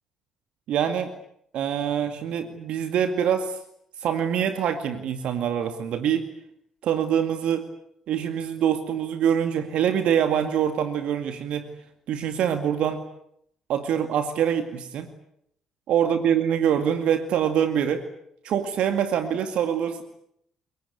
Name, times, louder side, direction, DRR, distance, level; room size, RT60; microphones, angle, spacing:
voice 1, 0.7-1.1 1.5-3.6 4.0-6.3 6.8-7.7 8.1-11.7 12.1-13.0 13.7-15.1 15.9-18.0 18.4-20.0, right 9 dB, 60° right, 8 dB, 2.2 m, -24 dB
27.5 x 23.0 x 8.2 m, 0.72 s
figure-of-eight pair, 50°, 2 cm